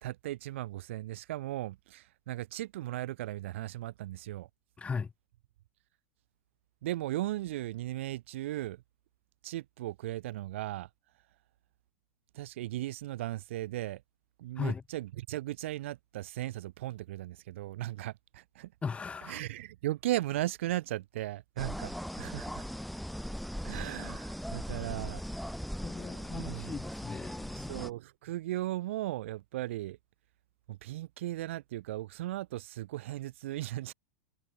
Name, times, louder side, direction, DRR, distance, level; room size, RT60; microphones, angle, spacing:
voice 1, 0.0-4.5 6.8-8.8 9.4-10.9 12.3-14.0 14.4-18.7 19.3-22.7 23.6-25.2 26.0-26.7 27.7-30.0 30.7-33.9, right 15 dB, 60° right, 1.2 m, -37 dB
voice 2, 4.8-5.1 14.6-14.8 18.8-19.4 25.8-27.7, left 5 dB, 15° left, 0.8 m, -37 dB
sound 1, 21.6-27.9, equal, ahead, 3.7 m, -39 dB
figure-of-eight pair, 90°, 8 cm